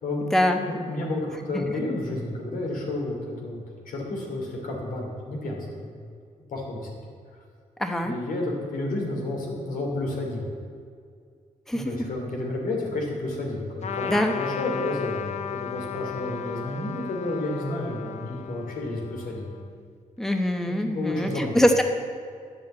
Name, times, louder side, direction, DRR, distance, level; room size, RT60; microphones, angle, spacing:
voice 1, 0.7-6.1 6.5-7.0 8.0-10.5 11.7-19.5 20.7-21.6, left 2 dB, 90° left, -1 dB, 3.4 m, -31 dB
voice 2, 7.8-8.1 11.7-11.9 14.1-14.4 20.2-21.8, left 1 dB, 5° left, 5 dB, 0.9 m, -23 dB
Trumpet, 13.8-19.7, left 9 dB, 55° left, 0.6 m, -35 dB
11.0 x 8.0 x 8.3 m, 2.2 s
wide cardioid pair, 125°, 14 cm